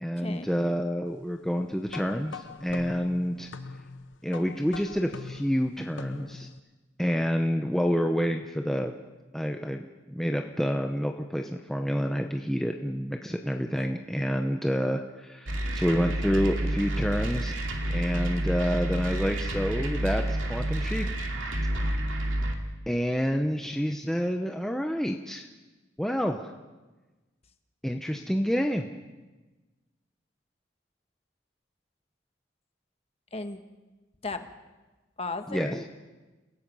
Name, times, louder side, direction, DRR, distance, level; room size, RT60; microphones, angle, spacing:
voice 1, 0.0-3.5 4.2-6.5 7.0-8.9 9.3-9.8 10.1-17.6 17.9-20.2 20.5-21.1 22.9-25.5 26.0-26.5 27.8-28.9 35.5-35.8, equal, ahead, 3 dB, 0.8 m, -28 dB
sound 1, 1.9-6.6, left 4 dB, 70° left, 1.0 m, -43 dB
sound 2, 15.5-22.5, right 1 dB, 80° right, 2.5 m, -29 dB
voice 2, 33.3-33.6 34.2-34.5 35.2-35.9, left 3 dB, 30° left, 8 dB, 1.3 m, -35 dB
29.5 x 16.5 x 5.5 m, 1.2 s
head